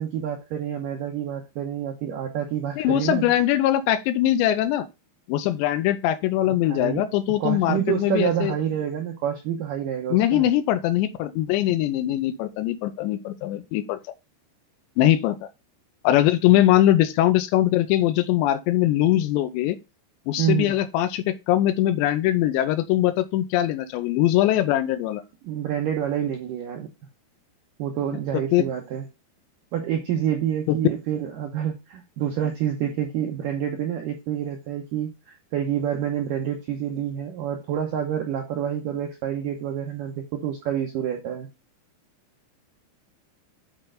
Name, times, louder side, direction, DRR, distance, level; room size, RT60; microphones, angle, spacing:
voice 1, 0.0-3.3 6.5-7.1 7.4-10.5 20.4-20.7 25.4-26.9 27.8-29.0 29.7-41.5, right 9 dB, 80° right, 2.0 m, -28 dB
voice 2, 2.8-4.9 5.3-8.5 10.1-14.0 15.0-15.5 16.0-19.8 20.3-25.2 28.5-28.6 30.7-30.8, left 13 dB, 85° left, 2.9 m, -21 dB
8.8 x 4.4 x 3.8 m
omnidirectional pair, 5.2 m